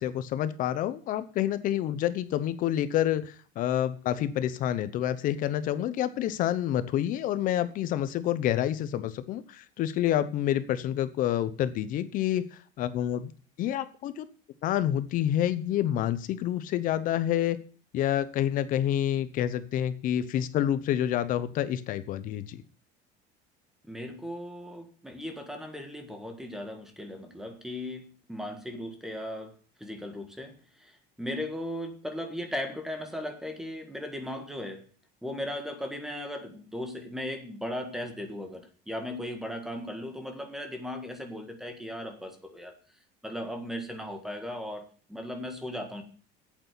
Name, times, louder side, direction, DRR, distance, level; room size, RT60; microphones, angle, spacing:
voice 1, 0.0-12.4 12.8-13.3 13.6-14.3 14.6-17.6 17.9-22.6, left 11 dB, 45° left, 14 dB, 0.9 m, -28 dB
voice 2, 23.9-29.5 29.8-30.5 30.8-34.8 35.2-42.7 43.2-46.0, left 1 dB, ahead, 5 dB, 1.7 m, -37 dB
8.4 x 8.3 x 8.3 m, 0.42 s
cardioid pair, 170°, 20 cm